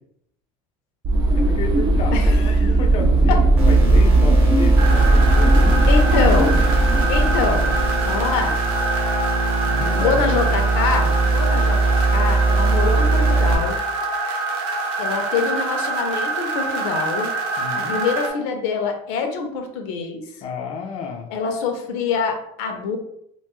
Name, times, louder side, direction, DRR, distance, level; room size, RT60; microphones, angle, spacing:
sound 1, 1.0-8.5, right 1 dB, 30° right, 0.4 m, -18 dB
voice 1, 1.3-5.9 9.7-10.7 17.6-17.9 20.4-21.3, left 4 dB, 35° left, 3 dB, 0.4 m, -31 dB
voice 2, 2.1-2.7 3.3-3.4 5.9-6.6 7.1-7.8 8.0-8.6 10.0-13.8 15.0-17.3 17.8-20.2 21.3-23.0, left 5 dB, 85° left, 5 dB, 0.6 m, -25 dB
sound 2, 3.6-13.5, right 3 dB, 10° right, 0.8 m, -20 dB
sound 3, 4.8-18.3, right 3 dB, 85° right, 0.7 m, -25 dB
2.5 x 2.2 x 2.9 m, 0.73 s
cardioid pair, 140°, 15 cm